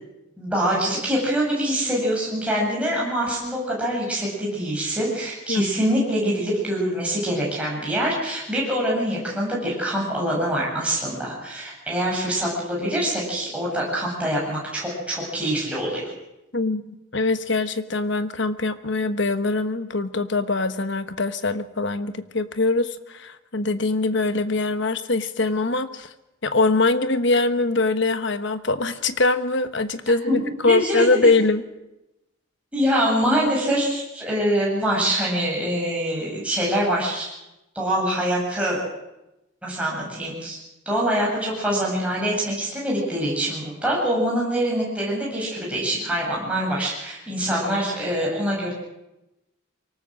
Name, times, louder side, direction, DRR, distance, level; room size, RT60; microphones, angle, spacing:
voice 1, 0.4-16.0 30.3-31.1 32.7-37.3 37.7-38.8 39.6-48.7, equal, 5° right, -4 dB, 7.6 m, -24 dB
voice 2, 16.5-26.1 26.4-31.6, left 3 dB, 60° left, 11 dB, 1.2 m, -23 dB
24.0 x 18.5 x 7.6 m, 0.95 s
head